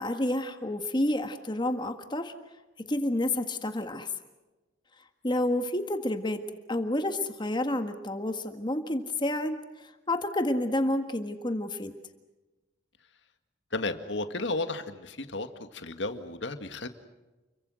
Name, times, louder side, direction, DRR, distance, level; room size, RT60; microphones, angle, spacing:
voice 1, 0.0-2.3 2.9-4.1 5.2-6.4 6.7-9.6 10.1-11.9, left 1 dB, 25° left, 7 dB, 1.6 m, -29 dB
voice 2, 13.7-16.9, left 2 dB, 70° left, 8 dB, 1.9 m, -33 dB
30.0 x 23.5 x 6.4 m, 1.1 s
head